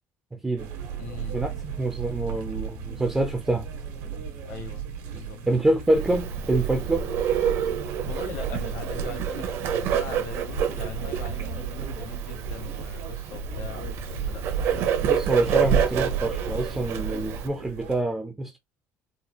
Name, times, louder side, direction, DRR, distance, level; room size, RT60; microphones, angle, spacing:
voice 1, 0.3-0.7 1.3-3.7 5.5-7.1 15.1-18.6, right 2 dB, 5° right, 0.3 m, -26 dB
sound 1, 0.6-18.0, right 7 dB, 85° right, 1.2 m, -37 dB
voice 2, 1.0-1.4 4.4-5.4 8.0-14.7, left 6 dB, 70° left, 0.9 m, -41 dB
Bird, 5.9-17.5, right 8 dB, 55° right, 0.7 m, -28 dB
3.9 x 2.3 x 2.9 m
cardioid pair, 180°, 5 cm